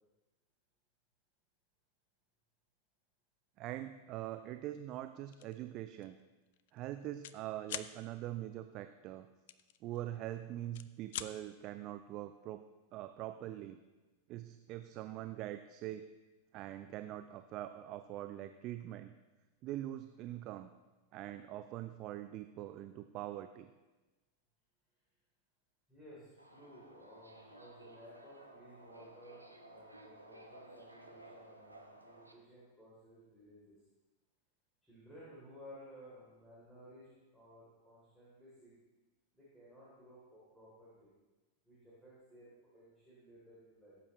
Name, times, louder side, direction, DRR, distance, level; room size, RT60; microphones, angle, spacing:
voice 1, 3.6-6.2 6.7-9.3 9.8-12.6 12.9-13.8 14.3-16.0 16.5-19.1 19.6-20.7 21.1-23.7, right 13 dB, 40° right, 10 dB, 0.4 m, -43 dB
sound 1, 5.3-5.6 6.0-6.2 6.5-7.4 7.6-7.9 9.5-10.3 10.6-11.3, left 12 dB, 55° left, 0.5 m, -43 dB
voice 2, 25.9-33.8 34.8-38.7 39.3-41.1 41.6-44.0, equal, 5° left, -9 dB, 3.3 m, -57 dB
Subway metro underground, 26.4-32.3, right 1 dB, 85° right, 1.0 m, -56 dB
17.0 x 8.3 x 3.1 m, 1.2 s
figure-of-eight pair, 90°, 0 cm